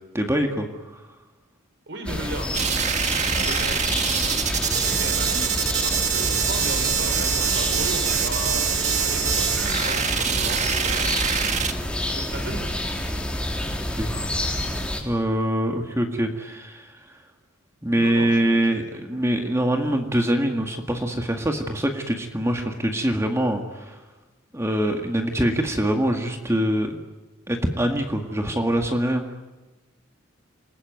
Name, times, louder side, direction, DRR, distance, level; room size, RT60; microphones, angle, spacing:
voice 1, 0.1-1.0 14.0-14.1 15.0-17.2 17.8-24.0 24.5-27.0 27.5-29.2, right 1 dB, 15° right, 4 dB, 2.0 m, -24 dB
voice 2, 1.9-2.5 3.3-3.8 4.7-5.5 5.8-11.2 12.1-12.8 17.9-18.6 18.9-19.0, right 1 dB, 60° right, 6 dB, 4.6 m, -35 dB
sound 1, 2.1-15.0, left 1 dB, 5° left, 3.8 m, -28 dB
sound 2, 2.5-11.7, right 7 dB, 35° right, 1.7 m, -24 dB
28.5 x 20.5 x 9.5 m, 1.2 s
head